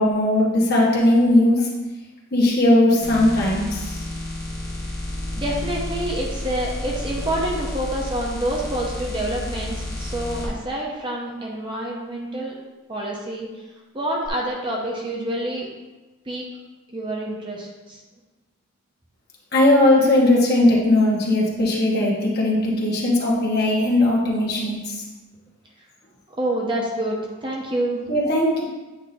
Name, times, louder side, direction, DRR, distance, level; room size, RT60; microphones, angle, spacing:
voice 1, 0.0-1.7 2.3-4.0 19.5-24.9 28.1-28.6, left 1 dB, 45° left, -4 dB, 1.2 m, -18 dB
sound 1, 3.0-10.5 14.2-14.3, left 1 dB, 10° left, 1.1 m, -31 dB
voice 2, 5.3-12.5 12.9-13.5 13.9-15.7 16.3-16.5 16.9-18.0 26.4-28.0, right 1 dB, 20° right, -2 dB, 0.7 m, -27 dB
8.3 x 2.8 x 4.2 m, 1.2 s
head